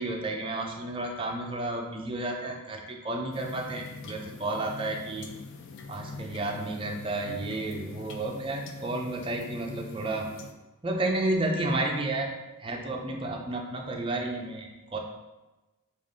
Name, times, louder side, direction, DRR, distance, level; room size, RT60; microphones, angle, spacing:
voice 1, 0.0-5.3 5.9-10.3 10.8-15.0, right 2 dB, 25° right, 1 dB, 0.4 m, -31 dB
sound 1, 3.3-10.5, left 4 dB, 55° left, 0.4 m, -44 dB
4.9 x 2.4 x 3.5 m, 1.1 s
head